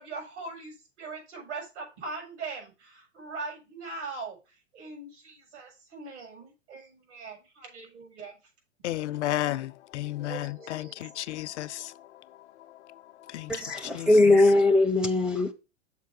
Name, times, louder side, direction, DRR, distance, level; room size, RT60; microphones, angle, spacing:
voice 1, 0.0-4.4 4.7-8.4 9.2-9.3 10.2-11.3, right 3 dB, 65° right, 5.2 m, -41 dB
voice 2, 8.8-13.6 13.9-14.1, left 14 dB, 65° left, 0.6 m, -34 dB
voice 3, 13.5-15.5, left 2 dB, ahead, 0.6 m, -21 dB
6.7 x 4.5 x 5.4 m
hypercardioid pair, 120°, 37 cm